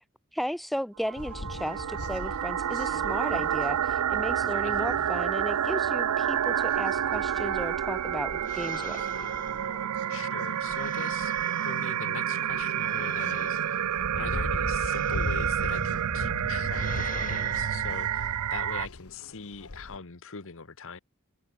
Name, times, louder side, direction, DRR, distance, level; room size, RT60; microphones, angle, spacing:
voice 1, 0.3-9.0, equal, ahead, 0.3 m, -35 dB
sound 1, 1.0-18.9, right 9 dB, 85° right, 0.4 m, -29 dB
sound 2, 1.2-20.0, left 2 dB, 85° left, 1.5 m, -41 dB
voice 2, 4.6-5.1 10.1-11.4 11.6-13.8 14.1-21.0, left 5 dB, 60° left, 1.2 m, -41 dB
sound 3, 8.4-12.1 12.7-16.0 16.6-18.1, left 6 dB, 35° left, 1.8 m, -46 dB
head